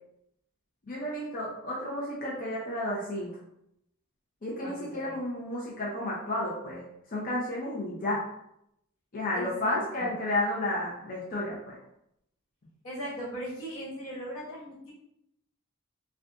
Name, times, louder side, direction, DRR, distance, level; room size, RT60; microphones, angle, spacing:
voice 1, 0.9-3.3 4.4-8.2 9.1-11.8, left 1 dB, 40° left, -5 dB, 0.6 m, -32 dB
voice 2, 9.3-10.1 12.8-14.9, right 1 dB, 85° left, -6 dB, 1.4 m, -38 dB
3.8 x 2.3 x 2.3 m, 0.79 s
head